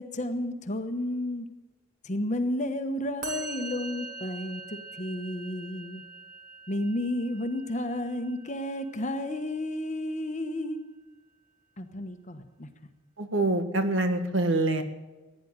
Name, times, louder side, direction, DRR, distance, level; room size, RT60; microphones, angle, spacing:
voice 1, 0.0-1.5 2.0-6.0 6.7-10.8 11.8-12.7, left 1 dB, 35° left, 8 dB, 1.1 m, -32 dB
Musical instrument, 3.2-10.5, right 4 dB, 40° right, 2.6 m, -44 dB
voice 2, 13.2-14.8, right 2 dB, 70° right, 8 dB, 1.7 m, -25 dB
15.5 x 10.0 x 8.9 m, 1.2 s
head